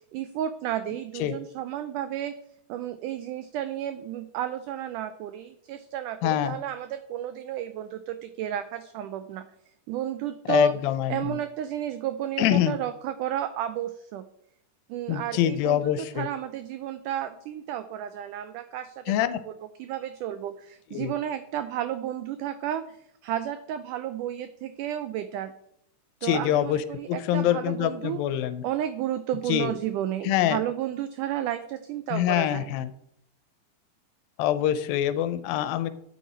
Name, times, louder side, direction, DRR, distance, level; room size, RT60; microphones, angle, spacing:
voice 1, 0.1-2.3 2.7-9.4 9.9-10.7 11.1-14.2 14.9-19.5 19.8-23.0 23.2-25.5 26.2-28.2 28.6-32.7, right 11 dB, 90° right, 11 dB, 1.8 m, -32 dB
voice 2, 6.2-6.6 10.5-11.4 12.4-12.8 15.1-16.3 19.1-19.4 20.9-21.1 26.2-28.6 29.5-29.7 30.2-30.6 32.1-32.9 34.4-35.9, left 12 dB, 80° left, 12 dB, 2.3 m, -25 dB
10.0 x 8.3 x 4.3 m, 0.72 s
omnidirectional pair, 4.2 m